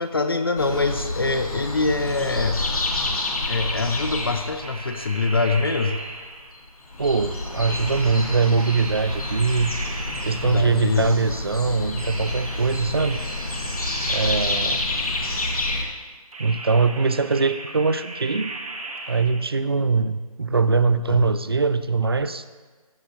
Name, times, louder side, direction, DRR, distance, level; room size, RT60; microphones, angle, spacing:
voice 1, 0.0-2.6 3.5-6.0 10.4-11.1 21.1-21.3, left 3 dB, 40° left, 8 dB, 0.5 m, -24 dB
sound 1, 0.6-6.0 6.5-6.6 6.8-15.8, left 2 dB, 70° left, 1.9 m, -28 dB
sound 2, 4.6-6.7 7.6-11.0 12.0-15.3 16.3-19.4, right 2 dB, 65° right, 1.2 m, -37 dB
voice 2, 7.0-9.7 10.2-13.2 14.1-14.9 16.4-18.5 19.1-22.4, right 4 dB, 40° right, 13 dB, 0.4 m, -22 dB
13.5 x 7.6 x 2.8 m, 1.4 s
figure-of-eight pair, 165°, 19 cm